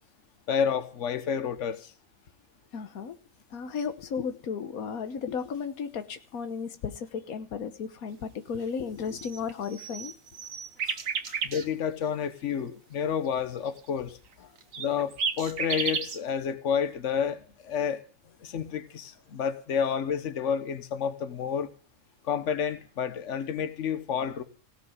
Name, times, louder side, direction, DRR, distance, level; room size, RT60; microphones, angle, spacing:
voice 1, 0.5-1.9 11.4-14.2 14.8-18.0 18.4-21.7 22.2-24.4, left 7 dB, 60° left, 1.4 m, -30 dB
voice 2, 2.7-3.2 3.5-10.1 10.8-11.4 14.4-14.5, left 6 dB, 90° left, 1.5 m, -35 dB
sound 1, 9.1-11.6 14.7-16.2, right 5 dB, 70° right, 1.6 m, -32 dB
17.0 x 6.7 x 9.6 m
omnidirectional pair, 1.5 m